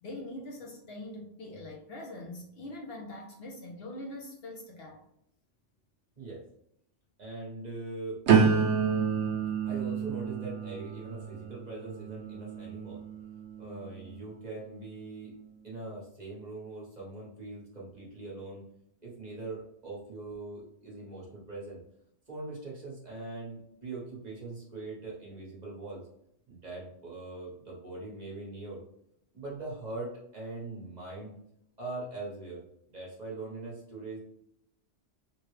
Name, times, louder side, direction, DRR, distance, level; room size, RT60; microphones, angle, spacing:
voice 1, 0.0-5.0, left 1 dB, 60° left, -1 dB, 0.8 m, -43 dB
voice 2, 7.2-8.2 9.7-13.0 13.6-15.4 15.6-18.6 19.0-21.8 22.3-26.1 26.5-28.8 29.3-31.3 31.8-32.6 32.9-34.2, right 2 dB, 40° right, -5 dB, 1.2 m, -41 dB
sound 1, 8.3-14.1 14.7-15.1, right 6 dB, 75° right, 0.9 m, -29 dB
3.4 x 2.2 x 3.1 m, 0.74 s
omnidirectional pair, 1.2 m